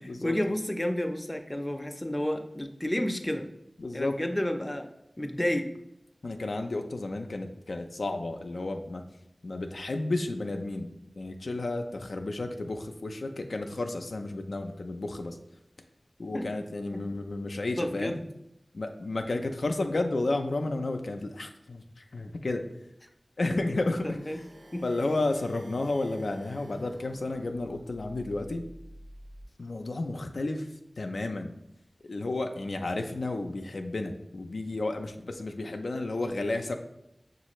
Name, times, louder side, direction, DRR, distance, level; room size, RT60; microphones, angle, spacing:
voice 1, 0.2-3.5 3.9-4.9 5.2-5.7 16.3-16.5 16.9-17.0 17.8-18.2 24.0-24.4 24.7-24.9, left 1 dB, 20° left, 4 dB, 0.5 m, -30 dB
voice 2, 3.8-4.1 6.2-9.0 9.4-10.9 11.2-15.4 16.2-18.2 18.7-22.6 23.4-24.0 24.3-24.4 24.8-28.6 29.6-30.7 31.0-31.5 32.1-36.7, left 2 dB, 85° left, 4 dB, 0.4 m, -32 dB
sound 1, 23.6-29.5, equal, 80° right, 0.5 m, -51 dB
6.2 x 2.4 x 3.0 m, 0.82 s
wide cardioid pair, 50°, 0 cm